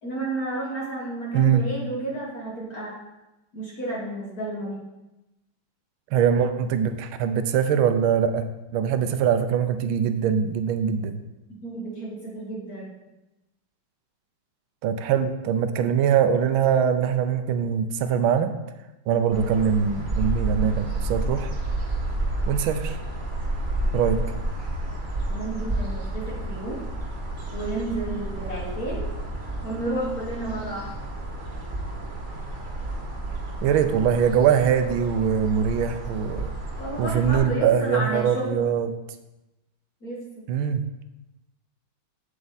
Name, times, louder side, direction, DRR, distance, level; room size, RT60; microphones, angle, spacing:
voice 1, 0.0-2.9 3.5-4.8 11.6-13.0 25.3-26.8 27.5-29.1 29.6-30.9 36.8-38.6 40.0-40.4, right 2 dB, 50° left, -4 dB, 1.9 m, -31 dB
voice 2, 1.3-1.6 6.1-8.5 8.7-11.2 14.8-18.5 19.1-21.5 22.5-23.0 23.9-24.2 33.6-36.5 37.0-38.9 40.5-40.8, right 8 dB, 85° right, 9 dB, 1.5 m, -22 dB
sound 1, 19.3-37.4, right 2 dB, 30° right, 1.2 m, -31 dB
7.8 x 7.8 x 4.1 m, 0.99 s
omnidirectional pair, 2.2 m